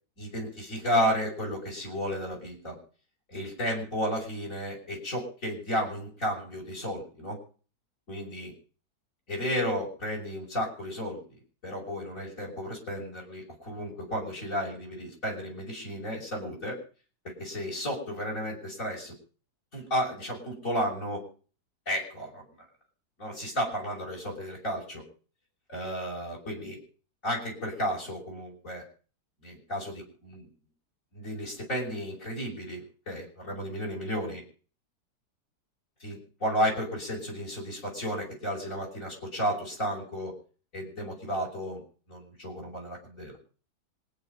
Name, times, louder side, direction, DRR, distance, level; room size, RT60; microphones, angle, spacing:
voice 1, 0.2-2.8 3.3-7.4 8.1-8.5 9.3-11.2 11.6-16.8 17.2-19.1 19.7-21.2 21.9-22.4 23.2-25.0 25.7-26.8 27.2-28.8 29.4-30.5 31.1-34.4 36.0-40.3 40.7-41.8 42.1-43.4, equal, 50° left, 0 dB, 6.6 m, -33 dB
26.5 x 9.6 x 5.5 m, 0.41 s
omnidirectional pair, 1.9 m